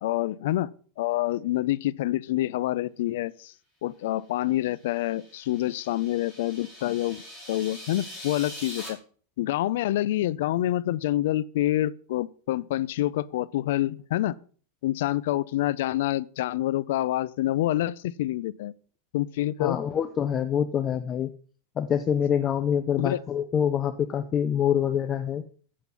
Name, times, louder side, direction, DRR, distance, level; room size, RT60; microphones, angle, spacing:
voice 1, 0.0-0.7 1.0-3.5 3.8-9.0 9.4-14.4 14.8-18.7 19.1-19.8 23.0-23.2, left 15 dB, 65° left, 0.5 m, -27 dB
sound 1, 4.7-8.9, left 1 dB, 5° left, 5.7 m, -43 dB
voice 2, 19.6-21.3 21.8-25.4, left 8 dB, 25° left, 0.7 m, -25 dB
8.4 x 7.5 x 6.9 m
supercardioid pair, 150°, 0 cm